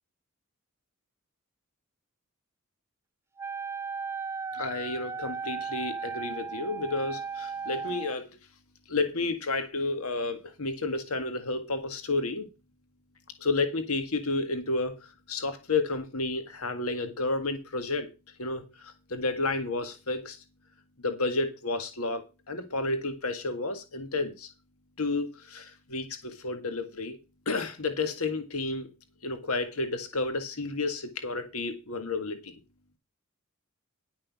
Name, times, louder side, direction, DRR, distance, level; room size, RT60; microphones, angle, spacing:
Wind instrument woodwind instrument, 3.4-8.2, right 5 dB, 10° right, 0.6 m, -36 dB
voice 1, 4.5-8.3 8.9-12.5 13.4-15.0 15.3-18.1 18.4-20.4 21.0-24.5 25.0-27.2 27.5-28.9 29.2-32.6, left 3 dB, 85° left, 1.8 m, -31 dB
11.5 x 6.2 x 6.0 m
head